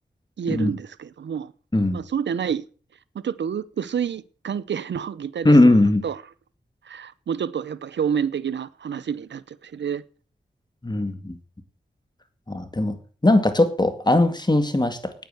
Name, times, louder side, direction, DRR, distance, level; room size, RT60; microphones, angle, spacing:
voice 1, 0.4-1.5 1.9-2.6 3.1-5.7 6.0-6.2 6.8-10.0, right 7 dB, 90° right, 0.7 m, -28 dB
voice 2, 5.4-6.1 10.8-11.4 12.5-15.1, left 1 dB, 25° left, 2.1 m, -19 dB
9.5 x 9.4 x 7.9 m
cardioid pair, 50°, 18 cm